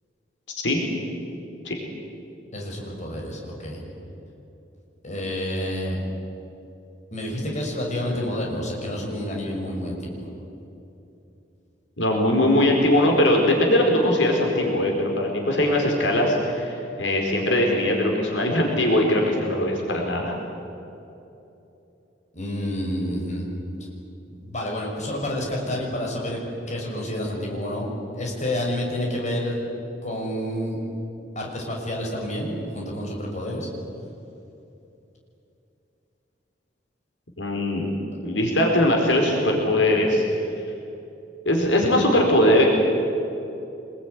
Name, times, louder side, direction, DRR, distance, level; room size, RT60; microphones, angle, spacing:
voice 1, 2.5-3.8 5.0-6.0 7.1-10.3 22.3-23.5 24.3-26.4 26.7-27.9 28.1-29.6 30.0-30.8 31.3-33.7, left 1 dB, 40° left, -1 dB, 6.3 m, -29 dB
voice 2, 12.0-20.4 37.4-37.9 38.2-40.2 41.4-42.7, left 1 dB, 85° left, 1 dB, 4.7 m, -20 dB
26.0 x 22.0 x 9.8 m, 2.8 s
head